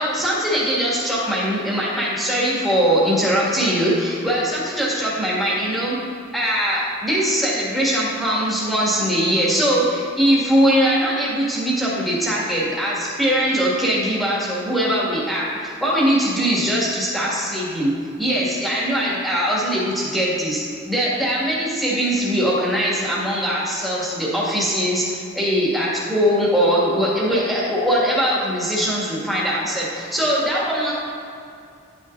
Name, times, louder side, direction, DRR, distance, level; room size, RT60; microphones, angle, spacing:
voice 1, 0.0-6.0 6.3-17.9 18.2-30.9, equal, ahead, -8 dB, 1.9 m, -21 dB
11.0 x 9.2 x 2.6 m, 2.5 s
head